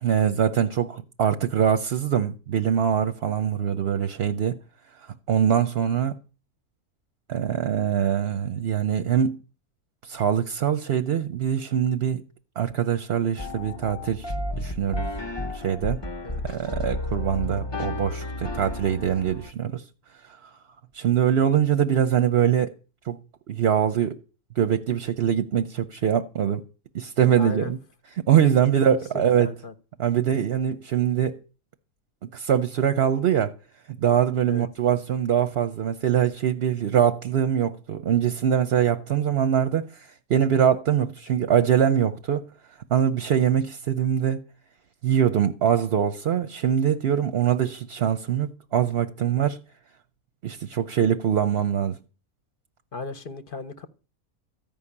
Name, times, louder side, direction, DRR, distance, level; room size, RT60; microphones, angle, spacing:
voice 1, 0.0-4.5 5.3-6.2 7.3-9.4 10.0-12.2 12.6-14.3 14.6-15.0 15.5-16.0 16.4-19.8 20.4-20.5 20.9-22.7 23.1-23.2 23.5-24.2 24.6-26.6 26.9-27.8 28.3-29.5 30.0-31.4 32.3-33.5 33.9-42.5 42.9-44.4 45.0-49.6 50.4-52.0, right 9 dB, 50° right, 0.9 m, -23 dB
sound 1, 13.4-19.5, left 2 dB, 25° left, 0.6 m, -32 dB
voice 2, 27.4-27.7 28.4-28.5 28.9-29.7 34.5-34.7 52.9-53.9, left 4 dB, 45° left, 0.9 m, -35 dB
14.5 x 5.6 x 9.8 m
omnidirectional pair, 1.5 m